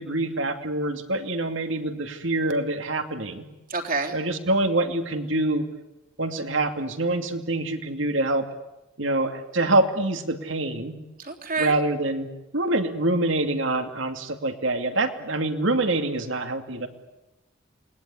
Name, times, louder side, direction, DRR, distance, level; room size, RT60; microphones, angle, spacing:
voice 1, 0.0-3.5 4.1-5.7 6.2-8.4 9.0-11.0 11.6-16.9, right 2 dB, 65° right, 6 dB, 2.6 m, -25 dB
voice 2, 3.7-4.2 11.2-11.8, right 4 dB, 45° right, 2 dB, 3.3 m, -28 dB
28.5 x 21.0 x 9.9 m, 1.0 s
head